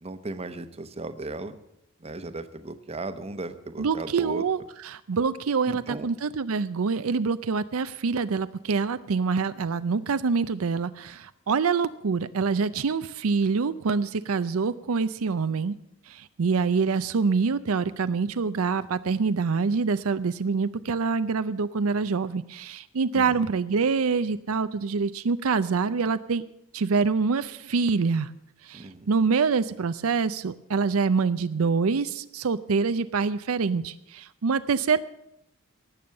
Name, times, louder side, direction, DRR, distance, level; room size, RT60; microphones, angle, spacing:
voice 1, 0.0-1.6 2.0-4.4 5.7-6.1 23.1-23.4 28.7-29.1, right 2 dB, 30° right, 11 dB, 0.9 m, -36 dB
voice 2, 3.8-15.7 16.1-26.4 26.7-28.3 28.6-35.0, right 5 dB, 85° right, 13 dB, 0.5 m, -25 dB
18.5 x 7.1 x 7.6 m, 0.79 s
head